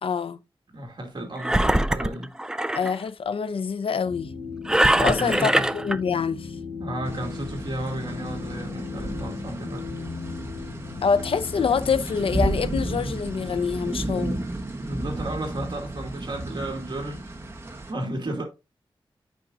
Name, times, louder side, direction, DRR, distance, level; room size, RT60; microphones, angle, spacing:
voice 1, 0.0-0.4 2.7-4.3 5.0-6.5 11.0-14.4, left 6 dB, 75° left, 0.6 m, -26 dB
voice 2, 0.7-2.3 4.9-5.7 6.8-9.9 14.8-17.3 17.7-18.4, right 1 dB, 50° right, 2.2 m, -33 dB
Engine, 1.4-2.9 4.7-6.0, right 1 dB, 5° right, 0.3 m, -22 dB
sound 1, 4.0-13.6, left 5 dB, 55° left, 1.5 m, -37 dB
sound 2, 7.0-17.9, right 1 dB, 25° right, 1.1 m, -33 dB
8.6 x 5.2 x 2.6 m
wide cardioid pair, 125°, 9 cm